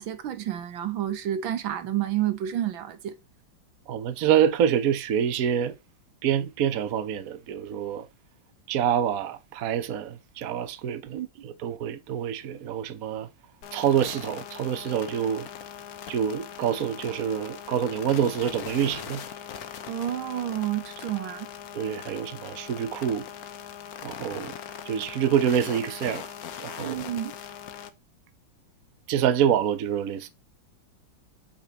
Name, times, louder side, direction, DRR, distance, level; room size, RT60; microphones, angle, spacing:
voice 1, 0.0-3.2 10.9-11.3 19.9-21.5 26.8-27.3, right 12 dB, 85° right, 1.8 m, -30 dB
voice 2, 3.9-5.7 6.2-8.0 8.7-13.3 13.7-15.5 16.1-19.2 21.7-23.2 24.0-24.5 24.9-26.2 26.6-27.0 29.1-30.3, right 9 dB, 55° right, 1.2 m, -26 dB
sound 1, 13.6-27.9, left 9 dB, 55° left, 1.3 m, -40 dB
8.2 x 5.9 x 2.9 m
omnidirectional pair, 2.1 m